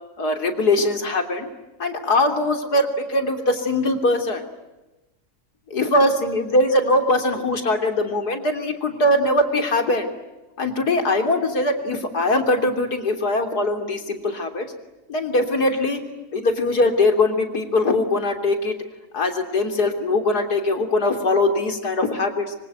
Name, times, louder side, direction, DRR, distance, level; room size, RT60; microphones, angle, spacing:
voice 1, 0.2-1.5 1.8-4.5 5.7-10.1 10.6-14.7 15.1-16.0 16.3-18.7 19.1-22.6, left 2 dB, 85° left, 6 dB, 3.7 m, -21 dB
25.5 x 25.0 x 9.2 m, 1.1 s
omnidirectional pair, 1.6 m